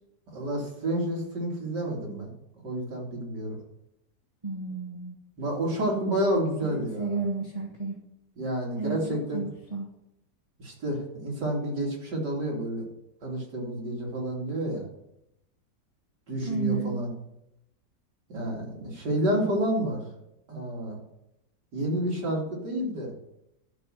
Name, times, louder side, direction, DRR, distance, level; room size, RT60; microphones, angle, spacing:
voice 1, 0.3-2.3 2.6-3.6 5.4-7.2 8.4-9.4 10.6-12.9 13.2-14.8 16.3-17.1 18.3-20.0 20.5-21.0 21.7-23.1, right 1 dB, 75° right, -2 dB, 3.4 m, -29 dB
voice 2, 4.4-5.1 6.6-8.0 8.8-9.9 16.4-16.9, right 4 dB, 20° right, -1 dB, 1.4 m, -32 dB
12.0 x 6.0 x 6.5 m, 0.82 s
omnidirectional pair, 1.8 m